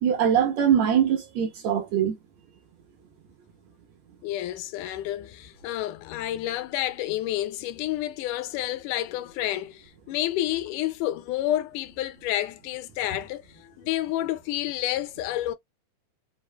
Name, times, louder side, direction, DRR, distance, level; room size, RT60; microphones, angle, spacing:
voice 1, 0.0-2.2, right 9 dB, 70° right, 1.7 m, -22 dB
voice 2, 4.2-15.5, left 13 dB, 80° left, 2.0 m, -30 dB
4.9 x 2.3 x 2.2 m
omnidirectional pair, 3.6 m